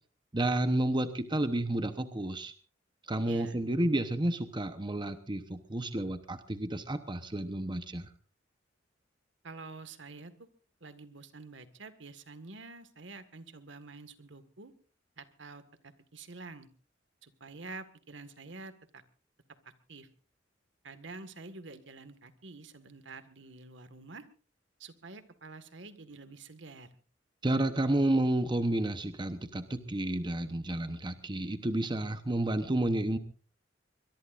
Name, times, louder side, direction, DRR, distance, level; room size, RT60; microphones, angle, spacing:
voice 1, 0.3-2.5 3.0-8.1 27.4-33.2, right 1 dB, 25° right, 9 dB, 1.0 m, -31 dB
voice 2, 3.3-3.6 9.4-10.5 10.8-14.7 15.2-16.7 17.2-19.0 19.9-20.1 20.8-24.3 24.8-26.9, right 3 dB, 70° right, 11 dB, 1.8 m, -48 dB
23.0 x 22.0 x 2.6 m, 0.39 s
head